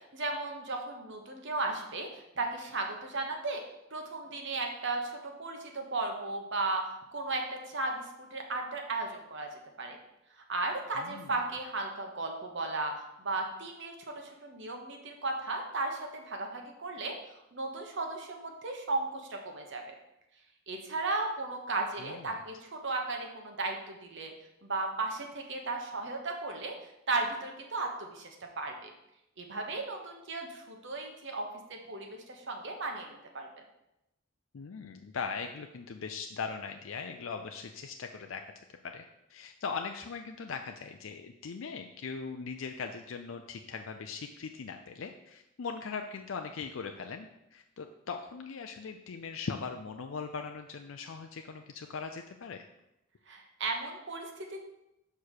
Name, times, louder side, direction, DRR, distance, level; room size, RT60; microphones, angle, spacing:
voice 1, 0.1-3.6 3.9-6.9 7.1-10.0 10.5-12.9 13.2-17.1 17.5-19.8 20.7-24.3 24.6-26.8 27.1-28.9 29.4-33.5 53.3-54.6, right 3 dB, 60° right, 3 dB, 1.2 m, -35 dB
voice 2, 10.9-11.4 22.0-22.4 34.5-38.4 38.9-39.0 39.3-52.7, left 5 dB, 70° left, 5 dB, 0.5 m, -40 dB
5.7 x 4.7 x 6.5 m, 0.88 s
head